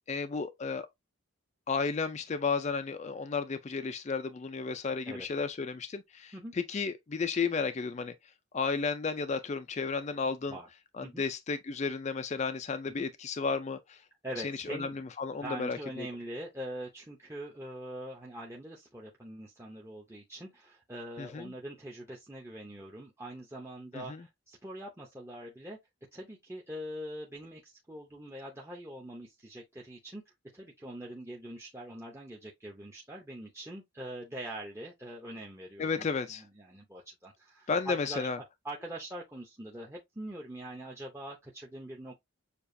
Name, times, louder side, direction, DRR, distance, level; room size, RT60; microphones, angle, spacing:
voice 1, 0.1-0.9 1.7-8.1 8.5-10.6 11.0-14.0 14.4-16.1 21.2-21.5 23.9-24.2 35.8-36.4 37.7-38.4, left 5 dB, 30° left, 0.3 m, -33 dB
voice 2, 14.2-15.1 15.4-25.8 26.1-30.2 30.5-36.1 36.4-38.3 38.6-42.2, right 1 dB, 10° right, 0.6 m, -43 dB
6.8 x 2.4 x 2.6 m
head